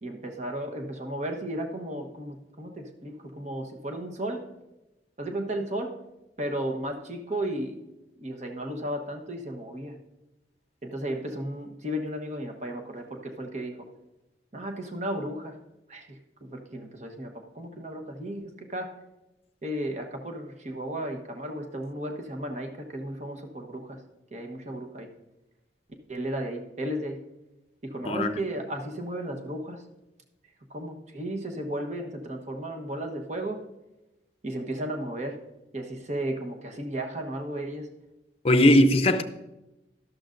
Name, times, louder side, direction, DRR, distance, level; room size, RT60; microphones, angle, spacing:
voice 1, 0.0-4.4 5.2-5.9 6.4-7.8 8.2-9.9 10.8-13.7 14.5-15.6 15.9-18.9 19.6-24.0 24.3-25.1 26.1-27.2 27.8-29.8 30.7-33.6 34.4-35.4 35.7-37.9 38.5-38.8, right 1 dB, 40° right, 1.1 m, -34 dB
voice 2, 28.0-28.4 38.4-39.2, left 1 dB, 35° left, 0.6 m, -19 dB
12.5 x 12.0 x 2.6 m
head